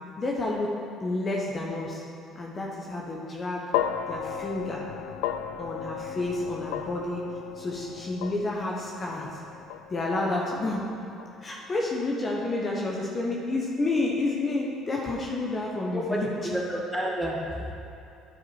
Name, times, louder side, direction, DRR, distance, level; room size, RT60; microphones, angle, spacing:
voice 1, 0.2-0.7 1.0-2.0 2.3-3.7 4.1-4.8 5.6-7.3 7.6-9.4 9.9-10.9 11.4-16.3, left 2 dB, 35° left, -3 dB, 1.1 m, -30 dB
sound 1, 3.7-12.1, left 9 dB, 80° left, 0.3 m, -35 dB
voice 2, 15.9-17.7, equal, 5° right, -3 dB, 1.8 m, -30 dB
10.0 x 4.6 x 4.8 m, 2.7 s
hypercardioid pair, 70°, 0 cm